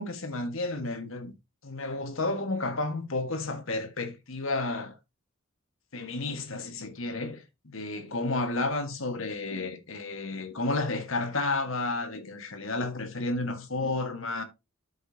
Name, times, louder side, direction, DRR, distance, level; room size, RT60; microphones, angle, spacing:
voice 1, 0.0-1.3 1.6-4.9 5.9-14.4, left 2 dB, 65° left, 1.6 m, -31 dB
12.5 x 5.2 x 2.8 m
head